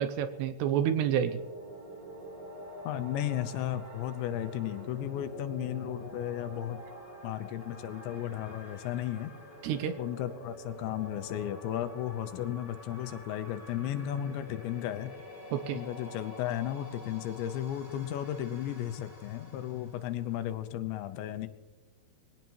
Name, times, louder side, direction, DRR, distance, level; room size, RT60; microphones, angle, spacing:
voice 1, 0.0-1.4 9.6-10.0 15.5-15.8, right 9 dB, 80° right, 9 dB, 2.6 m, -29 dB
sound 1, 0.7-20.5, equal, 10° right, 5.5 m, -48 dB
voice 2, 2.9-6.8 7.2-9.3 10.0-15.1 15.7-21.5, left 11 dB, 85° left, 10 dB, 3.1 m, -34 dB
22.0 x 17.0 x 3.1 m, 1.1 s
omnidirectional pair, 5.3 m